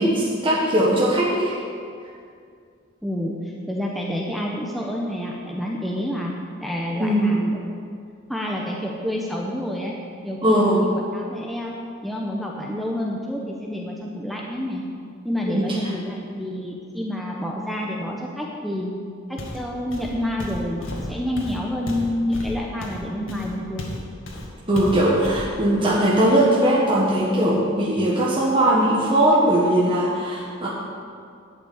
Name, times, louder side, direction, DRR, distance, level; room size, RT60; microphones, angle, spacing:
voice 1, 0.0-1.6 7.0-7.4 10.4-10.9 15.5-15.7 24.7-30.7, right 1 dB, 25° right, -6 dB, 1.5 m, -19 dB
voice 2, 3.0-3.3 3.7-6.3 6.6-7.6 8.3-10.0 10.2-11.7 12.0-14.8 15.2-18.9 19.3-24.0, left 1 dB, ahead, -2 dB, 0.8 m, -28 dB
Walk footsteps, 19.4-19.7 19.9-24.0 24.3-24.5 24.8-25.5, left 1 dB, 85° left, 1.9 m, -33 dB
11.0 x 5.9 x 8.7 m, 2.3 s
head